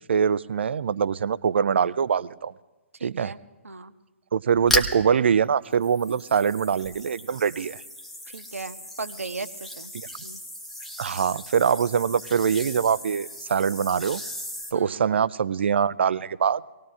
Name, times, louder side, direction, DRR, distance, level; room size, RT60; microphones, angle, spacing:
voice 1, 0.1-2.5 3.0-3.3 4.3-7.8 9.9-10.1 11.0-14.2 14.7-16.6, right 7 dB, 55° right, 18 dB, 0.4 m, -23 dB
voice 2, 3.0-3.9 8.3-9.9 10.2-10.4 14.7-15.0, right 3 dB, 75° right, 11 dB, 0.9 m, -37 dB
sound 1, 4.6-5.1 5.7-14.7, left 1 dB, 5° left, 0.9 m, -35 dB
25.5 x 18.5 x 2.5 m, 1.2 s
figure-of-eight pair, 130°, 8 cm